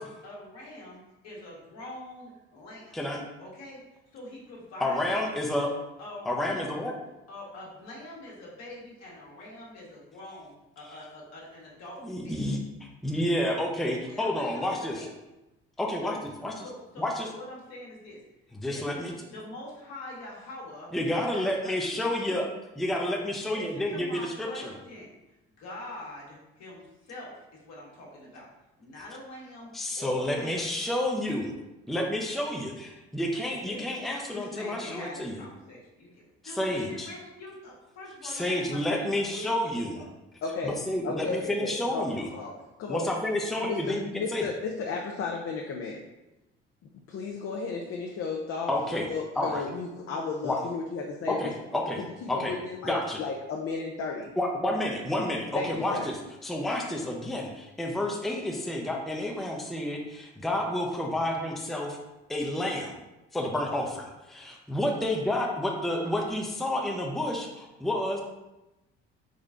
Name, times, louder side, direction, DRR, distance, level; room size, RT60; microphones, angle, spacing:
voice 1, 0.0-3.0 3.4-5.2 6.0-6.8 7.3-12.5 14.1-15.1 16.0-16.2 16.6-18.2 18.6-19.0 19.3-20.9 21.3-22.6 23.5-25.1 25.6-28.5 28.8-29.7 30.0-30.7 33.7-33.9 34.3-39.5 39.9-40.1 42.0-42.5, left 1 dB, 65° left, -4 dB, 1.3 m, -44 dB
voice 2, 4.8-5.7 6.3-6.9 12.0-14.9 15.8-16.2 16.4-16.5 17.0-17.3 18.6-19.1 20.9-22.5 22.8-24.7 29.7-31.5 31.9-35.4 36.4-37.1 38.2-40.0 40.6-42.3 42.9-44.5 48.7-49.1 49.4-49.6 50.4-50.6 51.3-52.5 52.8-53.2 54.4-56.2 56.4-62.0 62.3-63.0 63.3-68.2, left 1 dB, ahead, 0 dB, 0.5 m, -30 dB
voice 3, 40.4-42.5 42.8-43.0 43.6-46.0 47.1-48.7 49.0-51.5 52.2-54.3 55.5-56.1, left 4 dB, 50° left, 0 dB, 0.5 m, -34 dB
3.7 x 3.0 x 2.5 m, 0.99 s
hypercardioid pair, 65°, 29 cm